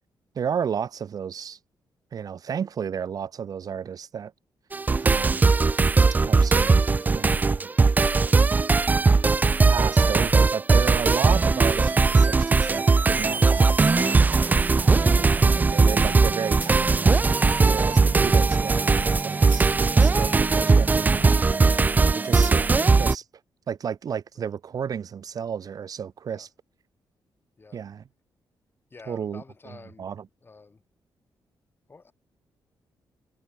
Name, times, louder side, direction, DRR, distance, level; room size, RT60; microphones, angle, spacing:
voice 1, 0.3-1.6 2.1-4.3 5.0-5.7 6.2-7.7 9.7-14.2 14.7-21.7 22.1-23.2 23.7-26.5 27.7-28.0 29.1-29.4 30.0-30.2, right 7 dB, 50° right, 0.9 m, -33 dB
sound 1, 4.7-23.1, right 4 dB, 20° right, 0.4 m, -19 dB
voice 2, 28.9-30.1 30.4-30.8 31.9-32.1, left 4 dB, 25° left, 5.6 m, -49 dB
cardioid pair, 120°, 8 cm